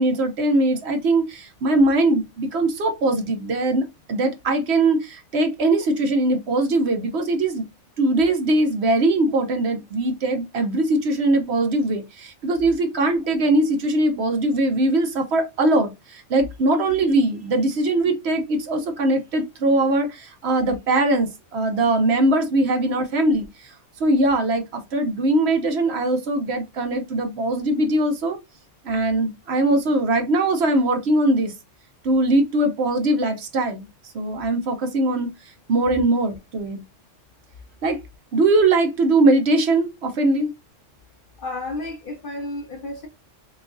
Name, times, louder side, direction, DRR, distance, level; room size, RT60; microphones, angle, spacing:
voice 1, 0.0-7.6 8.0-23.5 24.0-28.4 28.8-31.5 32.0-33.9 34.1-35.3 35.7-36.8 37.8-38.0 38.3-40.5, right 2 dB, 60° right, 0.9 m, -21 dB
voice 2, 41.4-43.1, left 2 dB, 55° left, 0.6 m, -32 dB
3.5 x 3.1 x 2.4 m
omnidirectional pair, 1.3 m